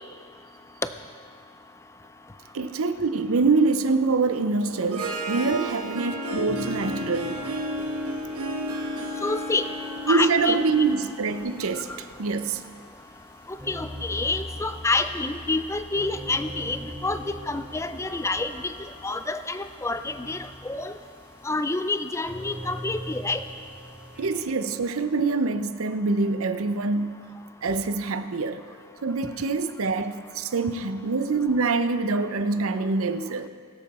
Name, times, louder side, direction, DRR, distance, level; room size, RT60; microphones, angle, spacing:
voice 1, 2.5-7.4 10.1-12.6 24.2-27.3 27.6-28.6 29.0-33.5, right 3 dB, 70° right, 0.6 m, -25 dB
Harp, 4.7-11.8, right 1 dB, 90° right, 1.2 m, -32 dB
sound 1, 6.5-24.4, equal, 5° right, 1.3 m, -43 dB
voice 2, 9.2-9.7 10.1-10.6 13.7-18.7 19.0-21.0 21.4-23.4, left 3 dB, 15° left, 0.4 m, -28 dB
21.0 x 7.4 x 4.3 m
head